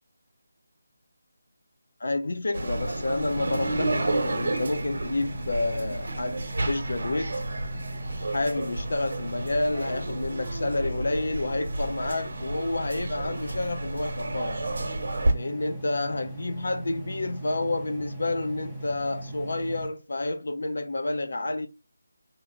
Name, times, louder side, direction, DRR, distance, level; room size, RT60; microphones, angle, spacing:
voice 1, 2.0-7.3 8.3-14.7 15.3-21.7, left 2 dB, 65° left, 0.7 m, -29 dB
sound 1, 2.5-15.3, right 2 dB, 50° right, 0.9 m, -31 dB
sound 2, 3.3-19.9, right 1 dB, ahead, 0.7 m, -39 dB
2.9 x 2.7 x 3.5 m
figure-of-eight pair, 170°, 0 cm